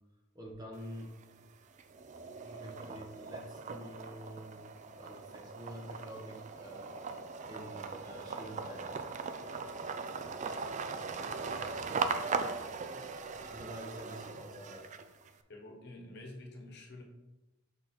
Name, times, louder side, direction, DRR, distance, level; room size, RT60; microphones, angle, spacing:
voice 1, 0.3-1.1 2.2-4.7 5.0-7.0 7.5-9.1 9.4-9.8 10.1-10.3 10.8-12.7 13.3-14.9 16.1-16.2, equal, 20° right, 0 dB, 1.0 m, -48 dB
sound 1, 0.7-1.4 1.8-15.3, right 4 dB, 40° right, 0.4 m, -39 dB
voice 2, 15.5-17.0, left 2 dB, 60° left, 1 dB, 1.2 m, -48 dB
6.2 x 4.4 x 4.1 m, 1.0 s
head